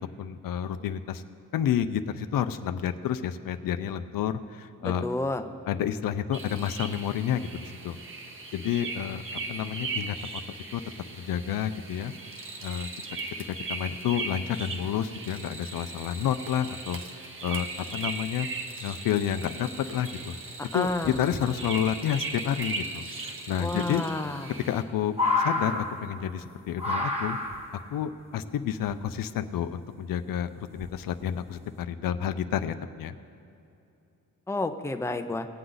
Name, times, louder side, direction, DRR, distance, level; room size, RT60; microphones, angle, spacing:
voice 1, 0.2-1.2 1.5-5.1 5.7-8.0 8.5-9.2 9.5-10.4 10.7-10.8 11.1-12.1 12.6-12.9 13.5-17.0 17.4-18.5 18.8-20.3 20.7-24.0 24.6-27.4 27.9-33.2, left 9 dB, 85° left, 10 dB, 0.6 m, -30 dB
voice 2, 4.8-5.4 20.6-21.2 23.6-24.5 34.5-35.5, left 2 dB, 10° left, 6 dB, 0.6 m, -30 dB
sound 1, 6.3-24.8, right 3 dB, 40° right, 1.1 m, -38 dB
sound 2, 20.1-20.5 20.9-21.4 23.0-23.1 23.3-23.4 23.9-24.0 24.3-26.5 26.8-27.9 28.8-29.5 30.2-30.3 30.7-31.1 31.6-31.8, left 3 dB, 20° right, 1.4 m, -30 dB
19.0 x 7.9 x 3.9 m, 2.7 s
cardioid pair, 95°, 33 cm